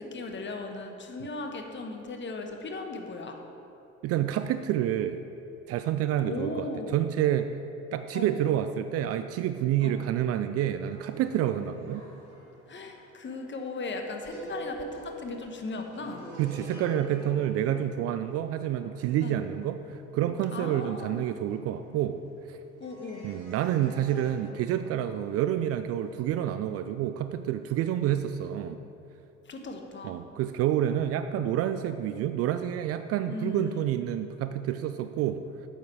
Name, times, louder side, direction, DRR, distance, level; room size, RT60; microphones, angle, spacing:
voice 1, 0.0-3.4 6.2-6.9 8.1-8.3 9.8-10.0 12.7-16.3 19.2-19.4 20.5-21.3 22.8-23.3 29.4-30.2 33.3-33.9, left 3 dB, 30° left, 4 dB, 1.2 m, -37 dB
voice 2, 4.0-5.2 5.7-7.5 7.9-12.0 16.4-22.2 22.5-22.6 23.2-28.8 30.0-35.4, right 11 dB, 45° right, 10 dB, 0.4 m, -28 dB
sound 1, 10.8-22.4 22.8-26.2, right 1 dB, 70° right, 2.3 m, -47 dB
8.7 x 7.5 x 4.8 m, 2.8 s
figure-of-eight pair, 55°, 36 cm